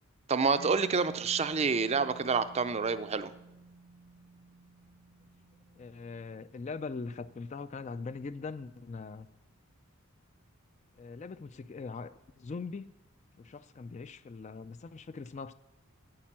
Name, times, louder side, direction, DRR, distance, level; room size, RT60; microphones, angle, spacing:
voice 1, 0.3-3.3, right 5 dB, 30° right, 12 dB, 0.4 m, -28 dB
Mallet percussion, 0.6-8.1, right 3 dB, 85° right, 0.9 m, -53 dB
voice 2, 5.8-9.3 10.9-12.8 13.3-15.5, left 4 dB, 35° left, 14 dB, 0.3 m, -41 dB
9.1 x 8.9 x 7.4 m, 0.98 s
head